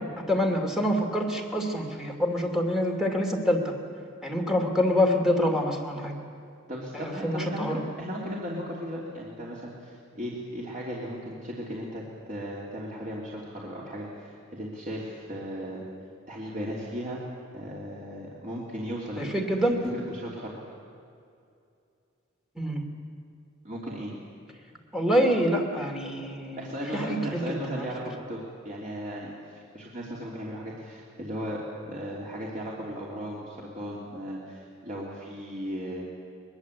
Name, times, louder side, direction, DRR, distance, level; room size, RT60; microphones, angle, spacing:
voice 1, 0.3-3.7 4.2-6.2 6.9-7.8 19.2-19.9 22.6-22.9 24.9-26.6 26.9-27.6, equal, ahead, 2 dB, 2.6 m, -26 dB
voice 2, 6.7-15.8 16.3-17.2 17.5-19.3 19.9-20.5 23.6-24.1 26.6-36.0, equal, 40° right, -4 dB, 3.2 m, -36 dB
22.5 x 22.0 x 8.3 m, 2.5 s
head